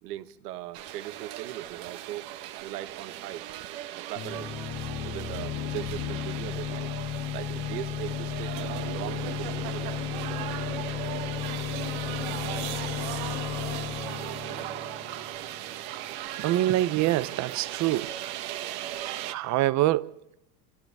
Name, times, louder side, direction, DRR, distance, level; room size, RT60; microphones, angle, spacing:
voice 1, 0.0-3.4 4.0-4.6 5.0-7.0 7.3-8.6 8.8-10.1 11.0-11.1, right 14 dB, 85° right, 1.4 m, -39 dB
sound 1, 0.7-19.3, right 13 dB, 55° right, 1.4 m, -37 dB
sound 2, 4.2-15.7, left 10 dB, 65° left, 2.5 m, -34 dB
voice 2, 16.4-18.1 19.3-20.3, right 15 dB, 40° right, 0.8 m, -25 dB
29.5 x 25.5 x 3.5 m
supercardioid pair, 125°, 45 cm